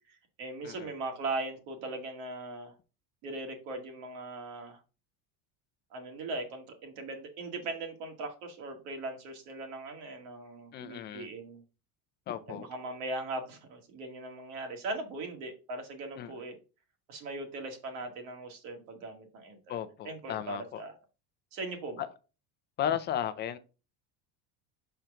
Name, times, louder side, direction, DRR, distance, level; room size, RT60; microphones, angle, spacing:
voice 1, 0.1-2.7 3.2-4.8 5.9-11.6 12.5-16.6 17.1-20.9 21.5-22.0, right 2 dB, 65° right, 2.0 m, -39 dB
voice 2, 10.7-11.3 12.3-12.7 16.2-16.3 19.7-20.8 22.0-22.1 22.8-23.6, left 10 dB, 25° left, 0.4 m, -34 dB
6.5 x 4.4 x 3.6 m
cardioid pair, 160°, 44 cm